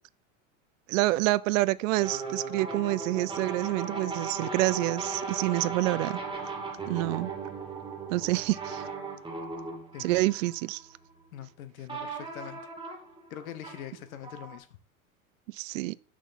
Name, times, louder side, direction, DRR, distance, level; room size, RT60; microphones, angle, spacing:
voice 1, 0.9-6.2 6.9-7.3 8.1-8.9 10.0-10.8 15.5-15.9, right 18 dB, 65° right, 0.5 m, -27 dB
sound 1, 2.0-11.2 11.9-14.6, right 4 dB, 10° right, 1.8 m, -37 dB
voice 2, 11.3-12.6 13.3-14.7, left 11 dB, 80° left, 1.0 m, -43 dB
6.2 x 6.1 x 4.0 m
hypercardioid pair, 105°, 42 cm